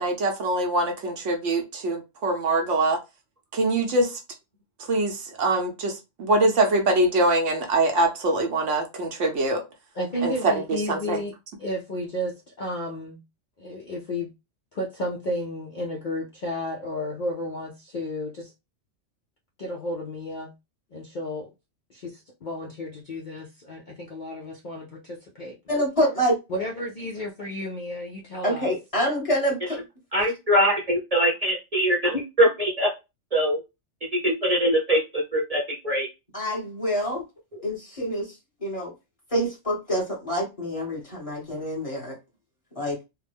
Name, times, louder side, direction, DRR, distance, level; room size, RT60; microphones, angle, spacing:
voice 1, 0.0-3.0 3.5-4.2 4.9-9.6 10.2-11.2, right 2 dB, 75° right, 1.1 m, -23 dB
voice 2, 9.9-11.3 11.6-13.2 13.6-14.3 14.7-18.5 19.6-20.5 20.9-21.5 21.9-25.6 26.5-28.7, left 1 dB, 50° left, 0.6 m, -32 dB
voice 3, 25.7-26.4 28.4-29.8 36.3-37.2 37.6-38.3 38.6-38.9 39.3-42.0 42.8-42.9, equal, 30° left, 1.4 m, -26 dB
voice 4, 30.1-32.9 33.3-33.6 34.1-36.1, equal, 35° right, 0.8 m, -22 dB
3.3 x 2.1 x 3.4 m
omnidirectional pair, 1.3 m